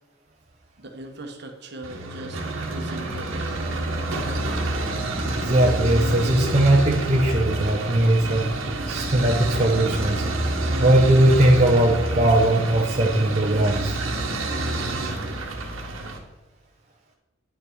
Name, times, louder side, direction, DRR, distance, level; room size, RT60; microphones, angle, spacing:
voice 1, 0.8-2.4 2.7-3.5, right 1 dB, 55° right, 4 dB, 1.1 m, -39 dB
sound 1, 1.8-16.2, right 2 dB, 70° right, 1.3 m, -28 dB
sound 2, 3.1-5.8 6.1-6.2 6.5-7.4 7.7-7.8 8.1-10.9 11.3-12.4, equal, 30° left, 1.4 m, -42 dB
voice 2, 5.3-8.5 8.9-10.3 10.8-14.0, right 1 dB, 30° right, -1 dB, 0.8 m, -19 dB
9.9 x 5.9 x 4.6 m, 1.1 s
head